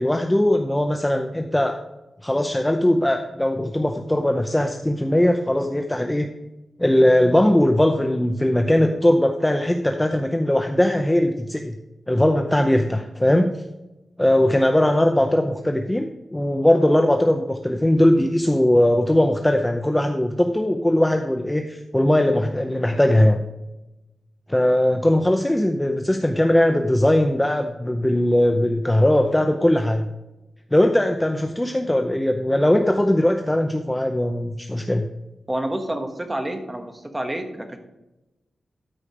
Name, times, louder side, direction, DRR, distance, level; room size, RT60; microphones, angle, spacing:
voice 1, 0.0-1.8 2.2-6.3 6.8-11.8 12.1-13.5 14.2-23.4 24.5-30.1 30.7-35.0, left 1 dB, 10° left, 5 dB, 0.6 m, -19 dB
voice 2, 35.5-37.8, right 1 dB, 15° right, 5 dB, 1.4 m, -28 dB
13.0 x 5.1 x 5.0 m, 0.97 s
wide cardioid pair, 145°, 0 cm